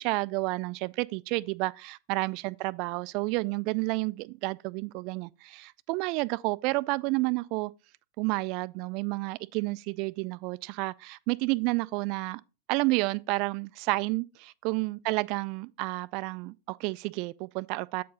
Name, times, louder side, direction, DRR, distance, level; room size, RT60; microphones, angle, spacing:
voice 1, 0.0-7.7 8.2-12.4 12.7-18.0, right 23 dB, 45° right, 0.3 m, -30 dB
8.2 x 4.6 x 4.1 m
figure-of-eight pair, 90°, 0 cm